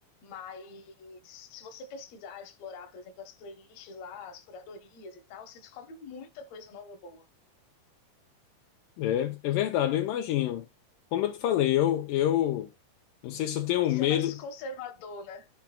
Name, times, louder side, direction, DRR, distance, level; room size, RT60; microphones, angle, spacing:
voice 1, 0.2-7.3 13.9-15.5, left 4 dB, 60° left, 2.0 m, -44 dB
voice 2, 9.0-10.7 11.1-12.7 13.2-14.3, left 12 dB, 80° left, 2.0 m, -26 dB
12.0 x 5.9 x 2.2 m
omnidirectional pair, 4.4 m